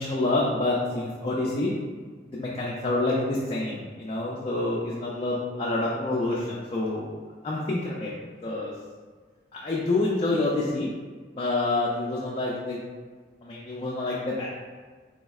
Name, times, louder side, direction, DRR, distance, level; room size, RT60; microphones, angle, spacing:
voice 1, 0.0-1.7 2.2-7.1 7.4-8.1 8.4-8.7 9.5-11.0 11.3-12.8 13.4-14.5, left 2 dB, 30° left, -5 dB, 0.3 m, -27 dB
3.5 x 3.1 x 2.3 m, 1.5 s
head